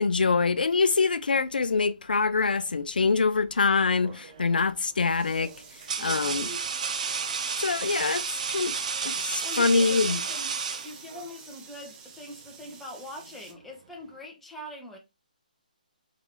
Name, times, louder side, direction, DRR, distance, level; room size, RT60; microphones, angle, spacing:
voice 1, 0.0-5.5 6.0-6.5 7.6-10.2, left 4 dB, 90° left, 0.4 m, -25 dB
sound 1, 4.0-13.5, right 5 dB, 15° right, 0.7 m, -50 dB
sound 2, 4.2-4.6 5.4-11.3, right 6 dB, 55° right, 0.7 m, -32 dB
voice 2, 6.0-6.6 9.4-10.6 10.8-15.0, left 1 dB, 5° left, 1.0 m, -43 dB
4.1 x 3.7 x 3.0 m
hypercardioid pair, 155°, 5 cm